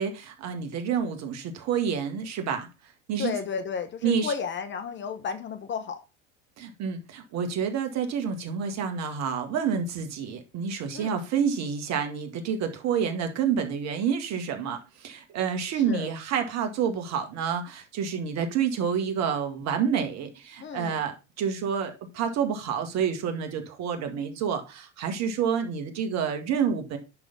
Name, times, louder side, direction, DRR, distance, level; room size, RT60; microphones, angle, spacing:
voice 1, 0.0-2.7 3.1-3.3 4.0-4.3 6.6-27.0, right 7 dB, 45° right, 2.0 m, -28 dB
voice 2, 3.2-6.0 10.9-11.2 15.7-16.1 20.6-21.0, left 6 dB, 30° left, 1.2 m, -33 dB
10.5 x 3.9 x 5.3 m
hypercardioid pair, 90°, 37 cm